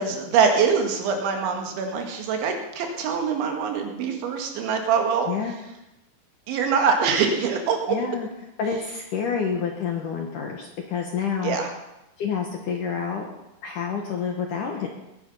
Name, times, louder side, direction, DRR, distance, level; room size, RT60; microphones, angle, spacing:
voice 1, 0.0-5.3 6.5-8.0 11.4-11.7, right 6 dB, 80° right, 3 dB, 4.3 m, -23 dB
voice 2, 7.9-8.3 8.6-11.6 12.2-13.3 13.6-14.9, left 6 dB, 65° left, 2 dB, 2.1 m, -28 dB
21.0 x 10.5 x 5.5 m, 0.94 s
omnidirectional pair, 5.3 m